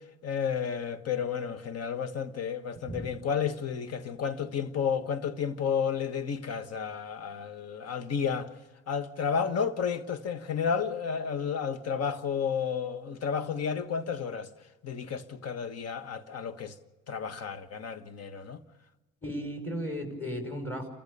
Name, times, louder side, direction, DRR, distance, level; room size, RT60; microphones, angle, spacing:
voice 1, 0.2-8.5 8.9-14.5 14.8-16.7 17.1-18.6, left 7 dB, 50° left, 1.5 m, -32 dB
voice 2, 19.2-20.9, equal, 5° left, 6.0 m, -35 dB
29.0 x 15.0 x 6.8 m
cardioid pair, 90°, 31 cm